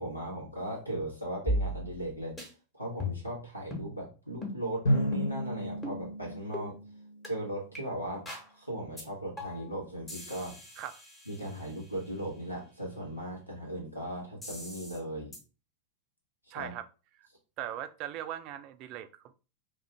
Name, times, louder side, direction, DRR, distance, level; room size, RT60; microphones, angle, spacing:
voice 1, 0.0-2.3 2.7-6.8 7.2-8.3 8.6-10.6 11.3-15.3 16.5-16.7, right 1 dB, 90° left, -3 dB, 1.2 m, -37 dB
sound 1, 1.5-2.1 2.4-2.5 3.0-3.4 3.7-3.9 4.4-4.6 5.1-5.4 5.8-6.0 6.5-6.7 7.2-7.3 7.7-7.8 8.3-8.5 9.0-9.1 9.4-9.7 10.1-11.9 14.4-15.0 15.3-15.4, left 1 dB, 15° left, 1.2 m, -37 dB
Drum, 4.8-7.6, equal, 60° left, 1.3 m, -32 dB
voice 2, 16.5-16.9 17.2-17.3 17.6-19.3, right 11 dB, 40° right, 11 dB, 0.3 m, -39 dB
2.8 x 2.5 x 3.3 m, 0.33 s
figure-of-eight pair, 90°, 0 cm